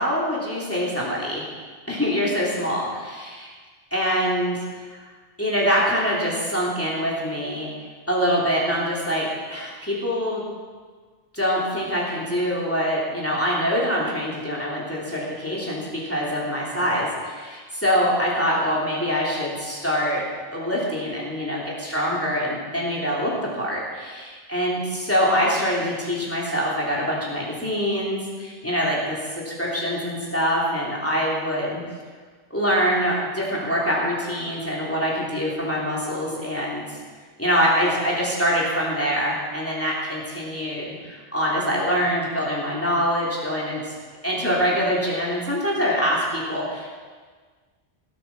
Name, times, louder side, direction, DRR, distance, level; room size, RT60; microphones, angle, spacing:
voice 1, 0.0-1.5 1.9-3.5 3.9-4.6 5.4-7.7 8.1-10.4 11.3-20.2 20.5-29.2 29.4-31.8 32.5-36.8 37.4-43.9 44.2-46.9, equal, 15° left, -5 dB, 3.1 m, -24 dB
17.5 x 8.8 x 6.0 m, 1.5 s
omnidirectional pair, 1.1 m